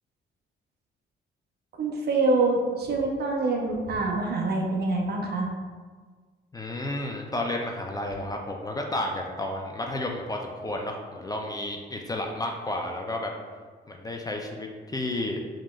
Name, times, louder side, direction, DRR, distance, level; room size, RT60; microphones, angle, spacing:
voice 1, 1.8-5.5, right 2 dB, 55° right, 0 dB, 0.7 m, -25 dB
voice 2, 6.5-13.3 13.9-15.4, left 1 dB, 20° left, 1 dB, 0.4 m, -32 dB
4.7 x 2.9 x 2.4 m, 1.5 s
cardioid pair, 90°, 20 cm